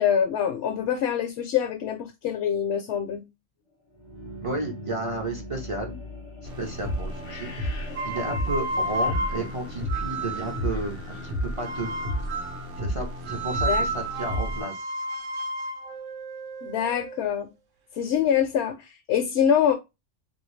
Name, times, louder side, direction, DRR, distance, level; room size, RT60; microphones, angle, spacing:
voice 1, 0.0-3.2 13.6-13.9 16.6-17.5 17.9-19.7, left 8 dB, 70° left, 0.8 m, -25 dB
sound 1, 3.9-13.7, left 2 dB, 45° left, 0.4 m, -43 dB
voice 2, 4.4-6.0 6.6-11.0 11.2-11.9 12.8-14.8, right 2 dB, 35° right, 0.5 m, -32 dB
sound 2, 6.4-14.6, equal, 55° right, 0.9 m, -32 dB
sound 3, 7.9-10.8 11.6-12.7 13.3-17.2, right 1 dB, 80° right, 1.1 m, -31 dB
3.3 x 2.7 x 3.0 m
omnidirectional pair, 1.3 m